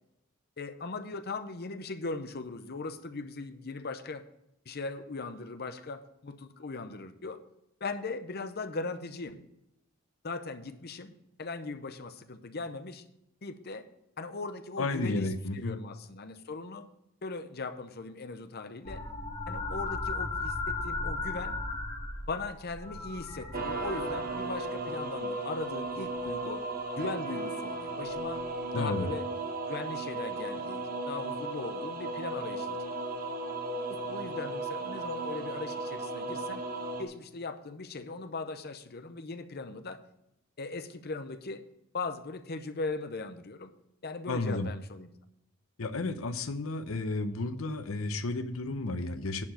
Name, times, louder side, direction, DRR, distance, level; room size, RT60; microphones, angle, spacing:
voice 1, 0.6-4.2 4.7-7.4 7.8-9.4 10.2-13.0 13.4-13.8 14.2-16.9 17.2-19.0 19.5-21.6 22.3-26.7 27.0-28.4 28.7-29.3 29.7-32.8 33.9-36.6 37.0-40.0 40.6-41.7 41.9-43.7 44.0-45.1, left 3 dB, 50° left, 10 dB, 0.8 m, -39 dB
voice 2, 14.8-15.8 28.7-29.1 44.3-44.7 45.8-49.4, left 2 dB, 80° left, 10 dB, 0.8 m, -32 dB
sound 1, 18.8-24.6 25.9-26.4 28.1-28.2, left 3 dB, 30° left, 1.7 m, -36 dB
sound 2, 23.5-37.0, right 2 dB, 45° right, 1.1 m, -35 dB
11.0 x 4.8 x 7.6 m, 0.82 s
head